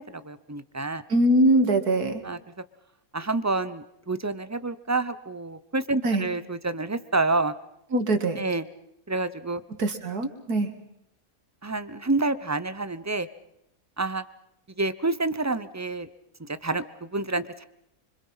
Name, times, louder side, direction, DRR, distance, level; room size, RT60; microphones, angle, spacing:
voice 1, 0.0-1.0 2.2-2.4 3.1-7.5 8.4-8.7 9.1-9.6 11.6-13.3 14.0-14.2 14.8-16.1 16.5-17.6, right 3 dB, 15° right, 14 dB, 0.5 m, -28 dB
voice 2, 1.1-2.2 6.0-6.3 7.9-8.4 9.8-10.7, right 1 dB, 85° right, 7 dB, 2.7 m, -22 dB
26.0 x 25.0 x 5.7 m, 0.80 s
omnidirectional pair, 1.6 m